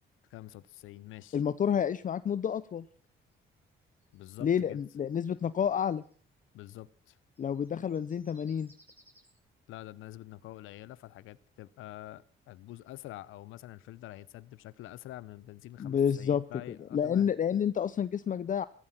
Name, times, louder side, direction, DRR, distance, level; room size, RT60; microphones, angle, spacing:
voice 1, 0.3-1.4 4.1-4.8 6.5-7.2 9.7-17.3, left 15 dB, 85° left, 0.8 m, -47 dB
voice 2, 1.3-2.9 4.4-6.0 7.4-8.7 15.8-18.7, left 8 dB, 40° left, 0.6 m, -29 dB
sound 1, 3.0-6.3 7.2-9.4, right 1 dB, 10° right, 5.4 m, -64 dB
15.0 x 14.0 x 5.9 m
cardioid pair, 90°, 20 cm